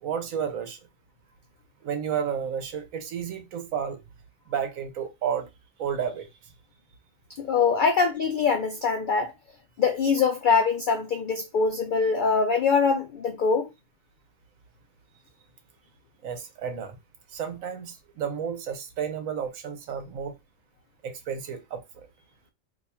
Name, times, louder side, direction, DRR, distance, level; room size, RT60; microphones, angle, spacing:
voice 1, 0.0-0.8 1.8-4.0 4.5-5.5 5.8-6.5 16.2-17.0 17.3-20.4 21.0-22.1, right 7 dB, 90° right, 1.2 m, -32 dB
voice 2, 7.4-9.3 9.8-13.7, left 5 dB, 65° left, 0.5 m, -23 dB
2.8 x 2.3 x 4.2 m
omnidirectional pair, 1.4 m